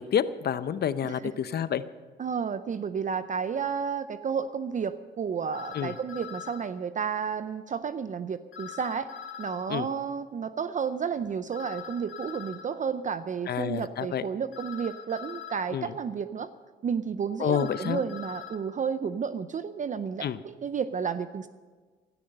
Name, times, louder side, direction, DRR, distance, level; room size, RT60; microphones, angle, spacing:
voice 1, 0.0-1.8 5.7-5.9 9.7-9.9 13.5-14.2 15.7-15.9 17.4-18.0 20.2-20.4, left 9 dB, 55° left, 14 dB, 0.7 m, -28 dB
voice 2, 2.2-9.1 9.4-16.5 16.8-21.5, right 6 dB, 40° right, 12 dB, 0.6 m, -32 dB
sound 1, 5.5-6.6 8.5-9.7 11.5-12.7 14.5-15.7 17.5-18.6, left 8 dB, 75° left, 1.6 m, -42 dB
16.5 x 12.5 x 5.4 m, 1.4 s
cardioid pair, 90°, 20 cm